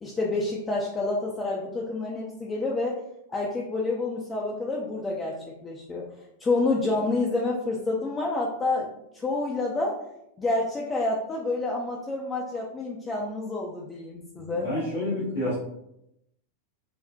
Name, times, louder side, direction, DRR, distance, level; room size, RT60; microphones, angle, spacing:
voice 1, 0.0-3.0 3.3-6.1 6.4-8.9 9.1-10.0 10.4-14.7, left 2 dB, 15° left, -3 dB, 0.4 m, -28 dB
voice 2, 14.3-15.6, left 1 dB, 75° left, -10 dB, 1.1 m, -29 dB
4.0 x 2.0 x 2.2 m, 0.82 s
figure-of-eight pair, 90°, 0 cm